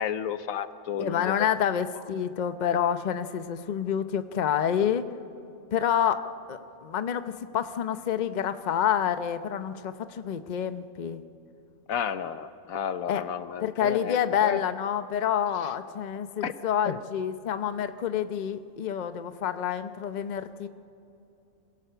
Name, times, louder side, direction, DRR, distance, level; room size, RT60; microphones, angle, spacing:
voice 1, 0.0-1.3 11.9-14.6 16.4-16.5 16.9-17.0, left 8 dB, 85° left, 12 dB, 1.2 m, -32 dB
voice 2, 1.0-5.1 5.7-6.2 6.5-11.2 13.1-13.2 13.6-20.7, left 9 dB, 40° left, 10 dB, 0.7 m, -28 dB
27.0 x 17.0 x 6.9 m, 2.8 s
omnidirectional pair, 1.4 m